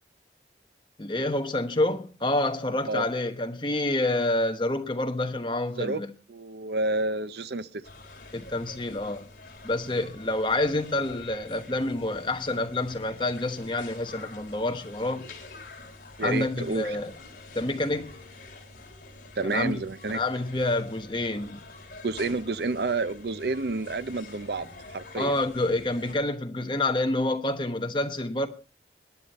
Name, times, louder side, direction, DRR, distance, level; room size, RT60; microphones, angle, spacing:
voice 1, 1.0-6.1 8.3-9.3 9.6-15.3 16.2-17.1 17.5-18.1 19.4-19.8 20.1-21.6 25.1-28.5, left 2 dB, 25° left, 1.1 m, -28 dB
voice 2, 6.3-7.8 16.2-17.0 19.4-20.2 22.0-25.4, right 3 dB, 65° right, 0.7 m, -29 dB
sound 1, 7.8-26.1, left 2 dB, 50° left, 3.4 m, -47 dB
20.5 x 9.9 x 4.2 m
head